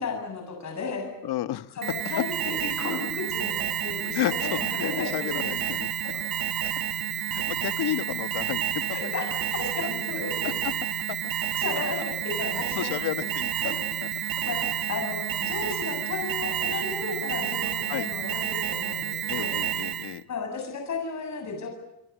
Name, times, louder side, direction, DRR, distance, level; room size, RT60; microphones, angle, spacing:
voice 1, 0.0-1.1 1.7-2.3 2.6-5.6 6.1-6.2 8.9-10.6 11.6-13.3 14.4-19.5 20.3-21.7, left 4 dB, 45° left, 3 dB, 7.7 m, -34 dB
voice 2, 1.2-1.8 2.9-3.0 4.1-5.9 7.3-8.9 10.4-10.7 11.1-11.2 12.7-13.7 14.0-14.1 17.9-18.1 19.3-20.2, left 13 dB, 80° left, 15 dB, 1.3 m, -32 dB
Alarm, 1.8-20.2, right 10 dB, 65° right, 1.9 m, -30 dB
27.0 x 23.0 x 8.2 m, 0.87 s
cardioid pair, 155°, 38 cm